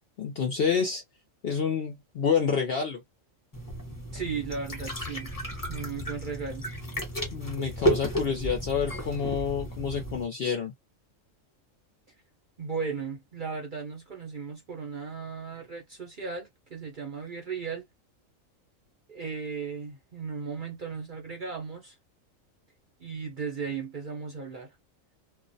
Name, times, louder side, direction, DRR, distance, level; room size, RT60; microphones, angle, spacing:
voice 1, 0.2-1.0 1.4-3.0 7.3-10.7, left 6 dB, 65° left, 0.6 m, -28 dB
sound 1, 3.5-10.2, right 1 dB, 20° left, 0.7 m, -33 dB
voice 2, 4.1-5.3 5.7-6.7 12.6-17.9 19.1-22.0 23.0-24.8, right 5 dB, 50° right, 0.6 m, -36 dB
2.4 x 2.1 x 2.5 m
omnidirectional pair, 1.4 m